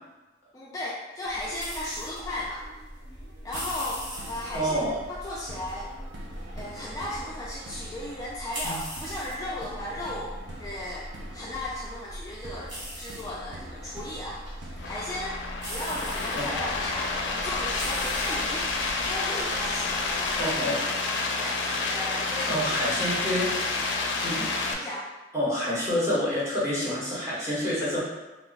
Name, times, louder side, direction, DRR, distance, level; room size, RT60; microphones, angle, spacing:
voice 1, 0.5-2.6 3.4-5.9 6.6-10.3 10.6-11.1 11.3-20.5 21.4-22.9 24.4-25.1, left 1 dB, 20° left, -6 dB, 0.4 m, -36 dB
sound 1, 1.2-20.6, equal, 90° right, 1.3 m, -41 dB
sound 2, 3.5-18.5, right 1 dB, 70° right, 0.5 m, -47 dB
voice 2, 4.5-5.0 8.6-8.8 16.3-16.4 20.4-20.7 22.4-23.4 24.2-24.5 25.3-28.0, equal, 15° right, -8 dB, 1.1 m, -27 dB
sound 3, 14.8-24.7, left 3 dB, 75° left, 0.5 m, -29 dB
3.1 x 2.2 x 3.9 m, 1.1 s
head